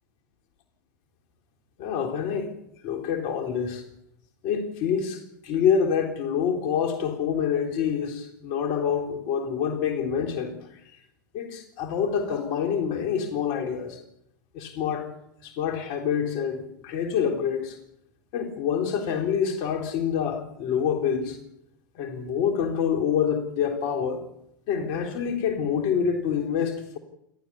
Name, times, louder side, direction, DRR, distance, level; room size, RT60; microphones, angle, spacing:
voice 1, 1.8-2.5 2.8-3.8 4.4-10.6 11.3-14.0 14.5-15.1 15.4-17.8 18.3-21.4 22.0-24.3 24.7-27.0, left 7 dB, 50° left, 3.8 m, -26 dB
28.0 x 13.0 x 7.1 m
figure-of-eight pair, 90°, 10 cm